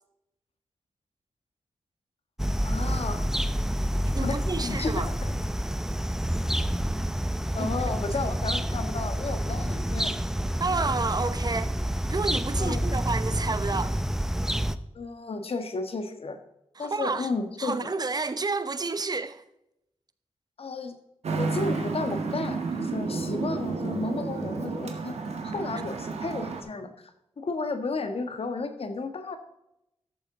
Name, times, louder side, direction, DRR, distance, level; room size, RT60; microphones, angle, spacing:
sound 1, 2.4-14.8, equal, 5° right, 0.6 m, -28 dB
voice 1, 2.6-3.3 4.2-5.3 7.5-10.1 12.6-12.9 14.9-16.4 16.8-17.9 20.6-20.9 21.4-25.2 25.4-27.1 27.4-29.4, left 3 dB, 65° left, 1.5 m, -33 dB
voice 2, 4.1-5.1 7.6-7.7 8.1-8.3 10.6-11.7 12.1-14.0 16.8-17.3 17.6-19.4, right 3 dB, 40° right, 0.9 m, -30 dB
Traffic noise roadway noise, 21.2-26.6, right 4 dB, 80° right, 1.7 m, -31 dB
13.0 x 7.2 x 3.8 m
cardioid pair, 70°, 11 cm